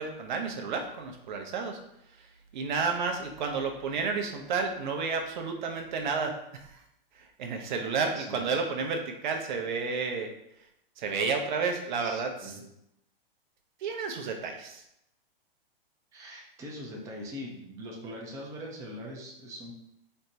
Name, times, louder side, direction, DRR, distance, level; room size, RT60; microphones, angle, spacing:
voice 1, 0.0-1.8 2.1-2.3 2.5-6.8 7.1-10.3 11.0-12.5 13.8-14.8, right 4 dB, 55° right, 4 dB, 0.6 m, -31 dB
voice 2, 8.0-8.6 12.0-12.6 16.1-19.7, equal, 10° right, -1 dB, 0.4 m, -42 dB
4.2 x 2.1 x 2.7 m, 0.80 s
hypercardioid pair, 115°, 29 cm